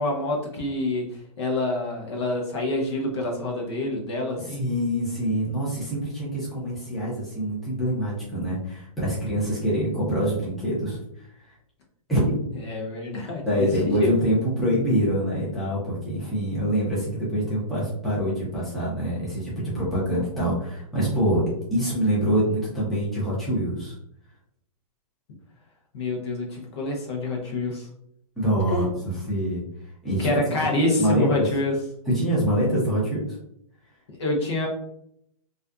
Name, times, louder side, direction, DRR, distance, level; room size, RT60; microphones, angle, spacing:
voice 1, 0.0-4.6 12.5-14.3 25.9-27.9 28.7-28.9 30.2-31.8 34.2-34.7, left 2 dB, 45° left, 0 dB, 0.7 m, -27 dB
voice 2, 4.6-11.0 12.1-12.4 13.5-21.4 21.7-23.9 28.4-29.6 30.0-30.3 30.8-31.5 32.1-33.4, equal, ahead, -9 dB, 0.7 m, -25 dB
2.5 x 2.3 x 2.3 m, 0.72 s
hypercardioid pair, 150°, 19 cm